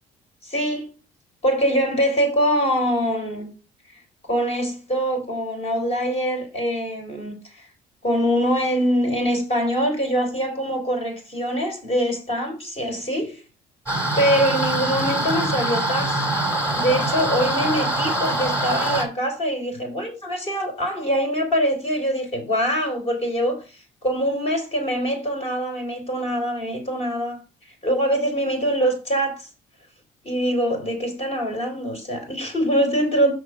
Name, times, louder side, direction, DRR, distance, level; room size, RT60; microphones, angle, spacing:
voice 1, 0.4-0.9 1.4-3.5 4.2-7.7 8.0-13.4 14.2-16.2 16.8-23.6 24.0-27.4 27.8-29.5 30.2-33.3, equal, 35° left, 4.0 m, -23 dB
sound 1, 13.9-19.0, right 1 dB, 15° left, 3.4 m, -24 dB
6.5 x 4.8 x 6.3 m
cardioid pair, 110°, 17 cm